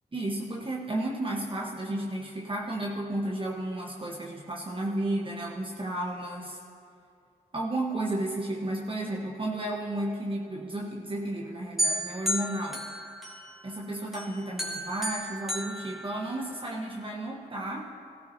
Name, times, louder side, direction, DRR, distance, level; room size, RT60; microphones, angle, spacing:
voice 1, 0.1-6.6 7.5-12.9 13.6-17.9, right 1 dB, 30° right, -2 dB, 1.2 m, -33 dB
sound 1, 11.8-13.7 14.1-16.7, equal, ahead, 2.6 m, -33 dB
15.5 x 13.5 x 2.8 m, 2.5 s
cardioid pair, 55°, 17 cm